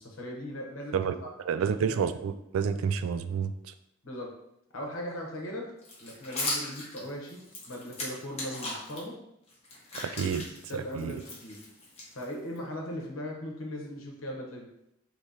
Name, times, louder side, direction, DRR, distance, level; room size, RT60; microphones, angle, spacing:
voice 1, 0.0-1.3 1.6-2.0 4.0-4.3 4.7-5.7 6.0-7.4 7.7-9.1 10.7-11.6 12.1-14.7, equal, 80° left, 0 dB, 1.0 m, -39 dB
voice 2, 1.5-3.5 10.2-10.5 10.7-11.2, right 6 dB, 90° right, 10 dB, 0.3 m, -29 dB
sound 1, 5.8-9.0 9.5-12.6, left 2 dB, 30° left, 1.1 m, -38 dB
4.7 x 3.0 x 2.8 m, 0.82 s
head